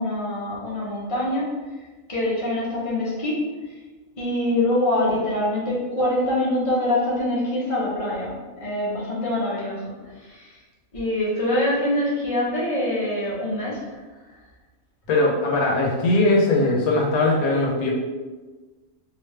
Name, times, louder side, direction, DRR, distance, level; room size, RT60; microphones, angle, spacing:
voice 1, 0.0-1.5 2.1-3.4 4.2-10.5 10.9-14.0, left 1 dB, 25° left, -6 dB, 0.9 m, -24 dB
voice 2, 15.1-17.9, left 2 dB, 90° left, -1 dB, 1.2 m, -20 dB
3.3 x 2.9 x 3.2 m, 1.3 s
omnidirectional pair, 1.5 m